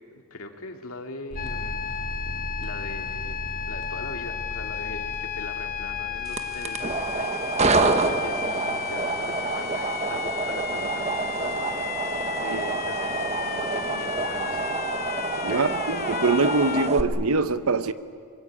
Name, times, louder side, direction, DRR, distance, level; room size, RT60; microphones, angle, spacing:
voice 1, 0.1-1.9 2.6-3.4 3.7-14.7 15.4-15.8, left 2 dB, 65° left, 4 dB, 2.3 m, -41 dB
sound 1, 1.3-7.2, right 1 dB, 50° right, 3.1 m, -37 dB
sound 2, 1.4-16.9, left 8 dB, 40° left, 0.6 m, -34 dB
sound 3, 6.2-17.0, right 3 dB, 30° right, 1.2 m, -27 dB
voice 2, 15.4-17.9, right 3 dB, 70° right, 12 dB, 1.0 m, -23 dB
25.5 x 22.5 x 8.5 m, 2.1 s
head